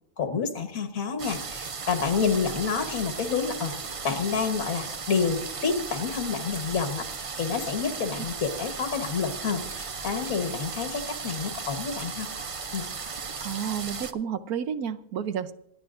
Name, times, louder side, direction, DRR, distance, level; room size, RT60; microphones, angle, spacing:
voice 1, 0.2-3.7 4.0-7.1 7.4-12.3 12.7-12.9, left 5 dB, 65° left, 6 dB, 1.8 m, -28 dB
sound 1, 1.2-14.1, right 5 dB, 60° right, 0.3 m, -36 dB
voice 2, 13.4-15.5, right 8 dB, 80° right, 11 dB, 1.3 m, -31 dB
27.5 x 9.6 x 2.6 m, 0.74 s
omnidirectional pair, 1.5 m